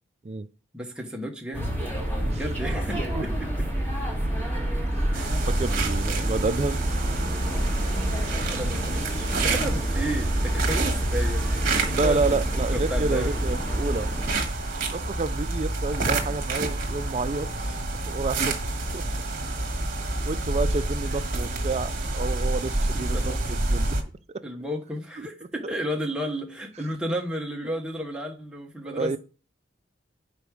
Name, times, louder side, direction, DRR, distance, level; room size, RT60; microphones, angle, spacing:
voice 1, 0.7-1.7 2.3-3.5 5.1-5.3 8.5-12.4 12.7-13.4 16.0-16.7 17.6-17.8 22.9-23.6 24.4-29.2, equal, 5° right, 1.0 m, -33 dB
sound 1, 1.5-14.3, right 1 dB, 10° left, 1.8 m, -29 dB
voice 2, 2.9-3.2 4.9-5.2 5.5-6.8 12.0-14.1 14.9-17.5 18.1-18.6 18.9-19.0 20.3-24.0 25.2-25.3 28.9-29.2, right 3 dB, 35° right, 0.4 m, -29 dB
sound 2, 5.1-24.0, right 2 dB, 50° right, 1.4 m, -28 dB
5.2 x 4.7 x 6.2 m
head